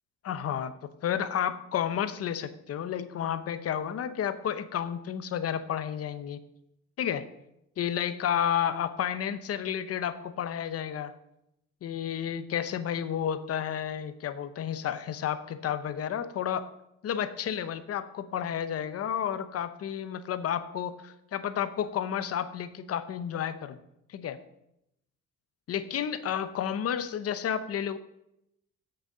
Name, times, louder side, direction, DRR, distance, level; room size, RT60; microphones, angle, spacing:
voice 1, 0.2-0.7 1.0-6.4 7.0-7.3 7.8-11.1 11.8-16.7 17.0-23.8 24.1-24.4 25.7-28.0, left 9 dB, 50° left, 12 dB, 0.8 m, -31 dB
8.0 x 6.5 x 7.4 m, 0.83 s
cardioid pair, 160°, 31 cm